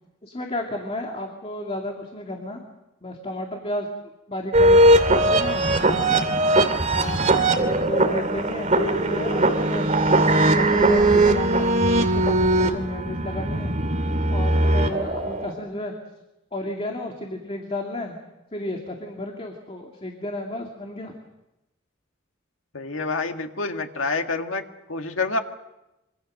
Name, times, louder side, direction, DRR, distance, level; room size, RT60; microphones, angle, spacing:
voice 1, 0.2-2.6 3.0-3.9 4.3-6.2 6.9-9.4 9.7-9.9 10.3-13.7 14.3-15.9 16.5-18.2 18.5-21.1, left 1 dB, 30° left, 2 dB, 2.4 m, -32 dB
sound 1, 4.5-15.5, right 1 dB, 40° right, 2.5 m, -20 dB
voice 2, 22.7-24.6 24.9-25.4, left 3 dB, 90° left, 5 dB, 1.9 m, -27 dB
25.5 x 25.5 x 6.6 m, 0.96 s
head